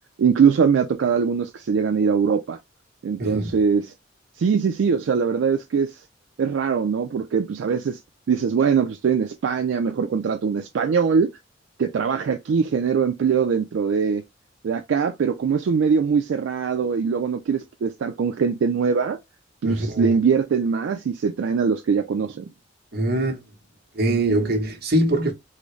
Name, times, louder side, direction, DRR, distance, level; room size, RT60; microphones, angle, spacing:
voice 1, 0.2-2.6 3.0-3.9 4.4-6.0 6.4-8.0 8.3-11.3 11.8-14.2 14.6-19.2 19.6-22.5, right 6 dB, 75° right, 0.3 m, -22 dB
voice 2, 3.2-3.5 19.6-20.2 22.9-23.4 23.9-25.3, right 1 dB, 55° right, 1.0 m, -23 dB
3.7 x 2.0 x 3.0 m
head